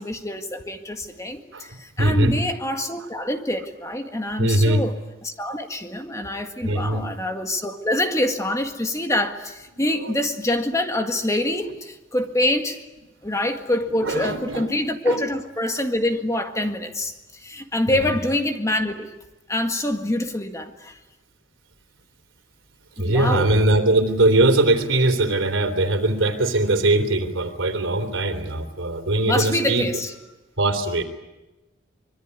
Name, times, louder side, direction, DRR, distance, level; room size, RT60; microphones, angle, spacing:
voice 1, 0.0-4.9 5.2-12.8 13.2-19.1 19.5-21.0 23.0-23.5 29.2-30.1, left 1 dB, 15° left, 6 dB, 1.8 m, -25 dB
voice 2, 2.0-2.4 3.6-3.7 4.4-4.8 6.2-6.3 6.6-7.1 9.8-10.3 11.6-11.7 13.9-14.7 15.0-15.2 17.9-18.2 23.0-30.0 30.6-31.0, right 2 dB, 90° right, 8 dB, 3.4 m, -21 dB
25.5 x 22.5 x 9.7 m, 1.1 s
head